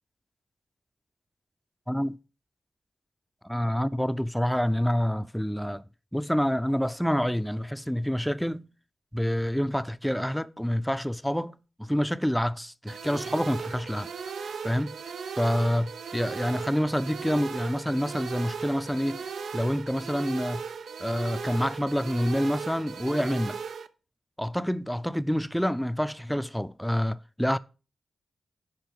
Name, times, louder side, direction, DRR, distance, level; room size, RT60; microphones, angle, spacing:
voice 1, 1.9-2.2 3.4-5.8 6.1-8.7 9.1-14.1 14.4-15.0 15.4-19.2 19.5-20.6 21.0-23.6 24.4-27.6, equal, 5° left, 0.5 m, -27 dB
sound 1, 12.9-23.9, right 6 dB, 80° right, 0.4 m, -37 dB
9.7 x 4.8 x 4.7 m
cardioid pair, 50°, 0 cm